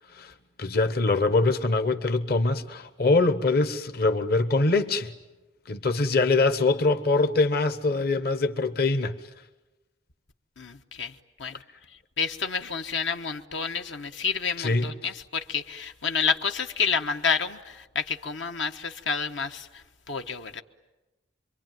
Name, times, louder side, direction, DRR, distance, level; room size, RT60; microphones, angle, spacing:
voice 1, 0.6-5.1 5.7-9.2 14.6-15.1, left 3 dB, 55° left, 1.1 m, -23 dB
voice 2, 10.6-11.1 11.4-11.6 12.2-19.7 20.1-20.6, left 6 dB, 80° left, 1.2 m, -29 dB
27.5 x 23.5 x 9.2 m
head